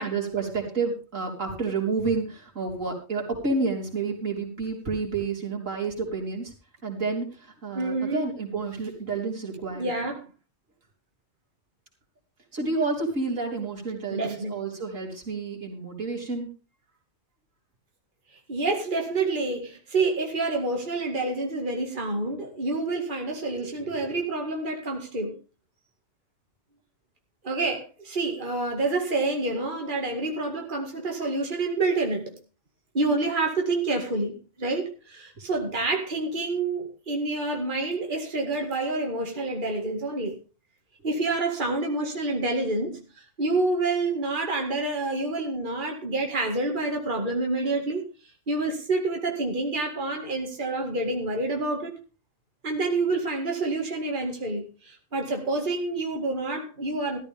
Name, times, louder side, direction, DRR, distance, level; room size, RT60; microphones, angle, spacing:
voice 1, 0.0-6.5 6.8-9.9 12.5-16.5 23.7-24.2, right 4 dB, 85° right, -2 dB, 4.3 m, -30 dB
voice 2, 7.7-8.3 9.6-10.3 14.1-14.5 18.5-25.3 27.4-32.4 32.9-40.4 41.0-43.0 43.4-48.0 48.5-51.9 52.6-57.2, right 2 dB, 40° right, 2 dB, 2.3 m, -28 dB
15.0 x 13.5 x 3.6 m, 0.33 s
omnidirectional pair, 1.3 m